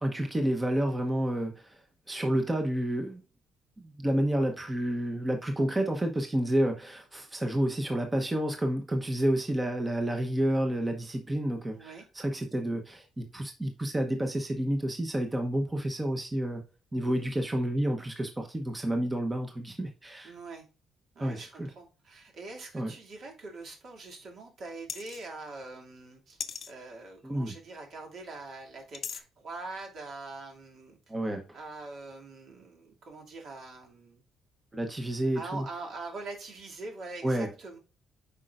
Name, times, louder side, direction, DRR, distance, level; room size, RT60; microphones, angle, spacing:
voice 1, 0.0-1.8 2.1-3.2 3.8-16.6 16.9-20.3 21.2-21.7 22.7-22.9 27.2-27.5 31.1-31.4 34.7-35.6 37.2-37.5, right 1 dB, 15° right, 1.0 m, -30 dB
voice 2, 11.7-12.0 17.0-17.3 20.2-20.7 21.1-26.4 26.7-31.0 31.5-34.2 35.3-37.8, right 3 dB, 60° right, 2.5 m, -43 dB
sound 1, 24.9-25.3 26.4-26.7 28.9-29.2, left 7 dB, 50° left, 0.8 m, -37 dB
8.3 x 5.2 x 2.5 m
cardioid pair, 130°, 0 cm